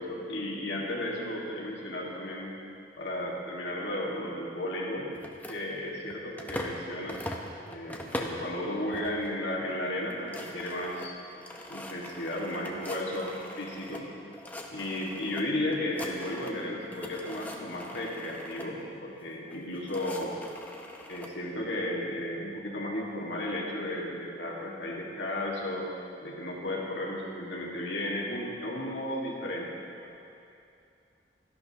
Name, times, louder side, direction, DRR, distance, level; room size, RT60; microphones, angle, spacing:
voice 1, 0.0-2.5 3.0-5.1 5.5-7.3 7.6-11.2 11.7-14.1 14.7-20.3 21.1-25.9 26.2-29.7 30.0-30.1, left 1 dB, 90° left, -3 dB, 1.8 m, -34 dB
sound 1, 5.2-6.8 7.1-8.5 8.9-9.4 9.7-9.8 10.0-14.0 14.3-15.4 15.7-16.6 16.9-18.7 19.5-21.3, left 1 dB, 10° left, 0.7 m, -41 dB
13.0 x 11.5 x 2.9 m, 2.6 s
head